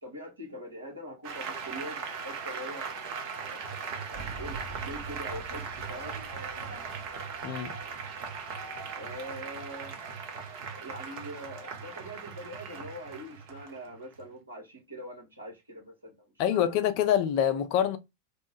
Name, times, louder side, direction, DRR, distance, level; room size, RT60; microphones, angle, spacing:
voice 1, 0.0-2.8 3.4-3.7 4.1-6.1 9.0-10.0 10.8-17.1, equal, 75° right, 1.3 m, -43 dB
Applause, 1.2-14.2, right 6 dB, 45° right, 0.7 m, -39 dB
sound 1, 4.1-9.8, right 1 dB, 30° right, 1.3 m, -48 dB
voice 2, 16.4-18.0, left 10 dB, 45° left, 0.4 m, -25 dB
2.9 x 2.1 x 2.9 m
figure-of-eight pair, 90°, 0 cm